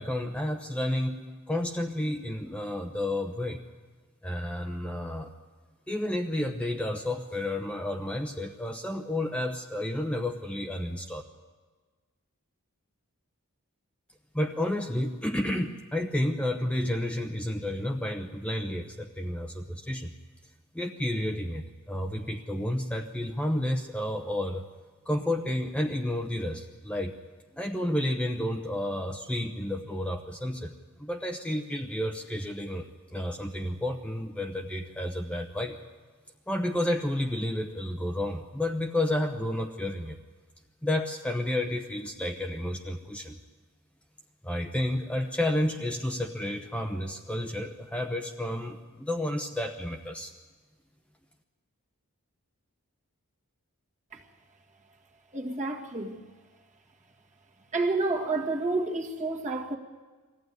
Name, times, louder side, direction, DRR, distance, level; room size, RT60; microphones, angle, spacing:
voice 1, 0.0-3.6 4.2-5.3 5.9-11.2 14.3-20.1 20.7-24.6 25.1-27.2 27.5-30.7 31.0-35.8 36.5-40.2 40.8-43.4 44.4-50.3, left 1 dB, 5° left, 0.8 m, -31 dB
voice 2, 55.3-56.2 57.7-59.8, right 3 dB, 35° right, 1.9 m, -29 dB
22.0 x 15.0 x 9.6 m
head